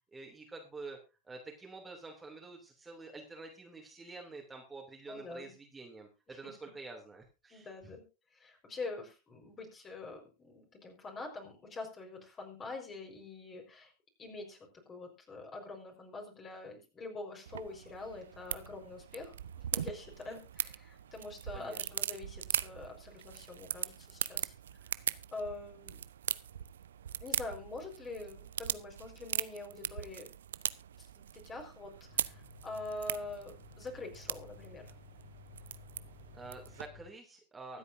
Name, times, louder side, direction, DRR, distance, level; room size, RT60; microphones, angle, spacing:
voice 1, 0.1-1.0 1.2-7.9 21.5-21.9 36.3-37.8, right 3 dB, 15° right, 1 dB, 2.7 m, -48 dB
voice 2, 5.1-5.5 6.3-6.5 7.5-8.0 8.3-13.9 14.2-24.5 25.3-26.0 27.2-30.3 31.2-34.9 37.7-37.8, left 3 dB, 25° left, 2 dB, 4.6 m, -45 dB
sound 1, 17.5-36.9, right 10 dB, 70° right, 0.5 m, -40 dB
sound 2, 32.0-37.1, left 6 dB, 45° left, 6.4 m, -56 dB
23.5 x 8.4 x 2.7 m, 0.30 s
figure-of-eight pair, 85°, 0 cm